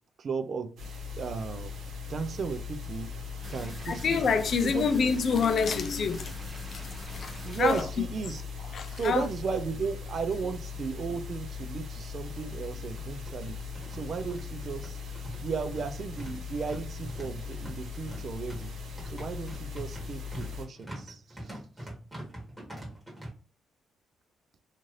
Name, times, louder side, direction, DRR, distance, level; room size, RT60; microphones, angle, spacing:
voice 1, 0.2-0.7 1.2-1.7 2.1-3.1 3.5-4.3 4.6-4.9 7.4-8.4 8.9-13.6 13.9-15.0 15.4-18.7 19.1-21.6, right 5 dB, 50° right, 0.4 m, -35 dB
sound 1, 0.8-20.7, left 5 dB, 75° right, 0.9 m, -40 dB
sound 2, 3.4-7.8, right 1 dB, 20° right, 0.7 m, -45 dB
voice 2, 3.9-6.3 6.7-6.8 7.1-7.8 8.7-9.2, left 5 dB, 55° left, 0.4 m, -27 dB
sound 3, 11.3-11.4 11.6-11.7 12.6-23.3, right 1 dB, 5° right, 1.3 m, -44 dB
2.6 x 2.5 x 3.1 m
cardioid pair, 90°, 0 cm